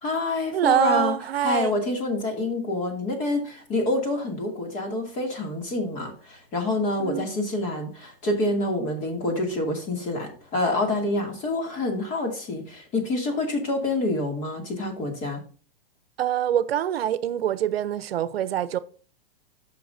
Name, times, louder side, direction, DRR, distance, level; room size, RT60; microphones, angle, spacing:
voice 1, 0.0-15.4, left 2 dB, 25° left, 2.4 m, -27 dB
voice 2, 0.5-1.7 7.0-7.3 16.2-18.8, right 11 dB, 85° right, 0.8 m, -25 dB
13.5 x 5.9 x 2.7 m
hypercardioid pair, 155°, 29 cm